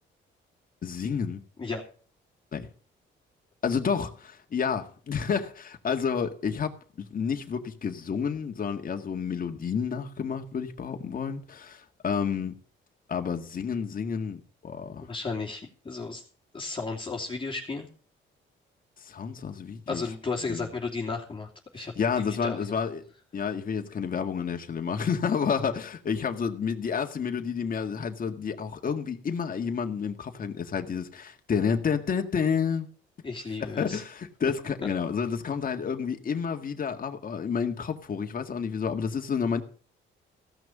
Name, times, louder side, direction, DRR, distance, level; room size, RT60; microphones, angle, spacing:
voice 1, 0.8-1.4 2.5-2.7 3.6-12.5 13.1-15.1 19.0-20.0 20.5-20.7 21.8-23.0 23.3-32.9 33.6-39.6, left 6 dB, 45° left, 1.9 m, -30 dB
voice 2, 15.0-16.2 16.5-17.9 19.9-21.9 22.4-22.6 33.2-34.0, left 4 dB, 25° left, 2.9 m, -34 dB
16.0 x 6.3 x 7.3 m
cardioid pair, 90°, 20 cm